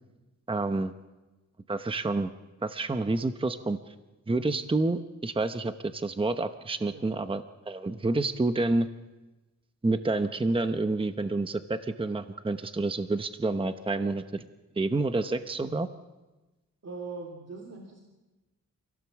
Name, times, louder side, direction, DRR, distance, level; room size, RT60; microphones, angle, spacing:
voice 1, 0.5-0.9 1.7-2.3 2.6-3.8 4.3-8.9 9.8-14.5 14.8-15.9, right 2 dB, 15° right, 9 dB, 0.8 m, -28 dB
voice 2, 16.8-18.0, right 4 dB, 55° right, 0 dB, 3.0 m, -40 dB
28.0 x 17.0 x 7.3 m, 1.1 s
wide cardioid pair, 115°, 31 cm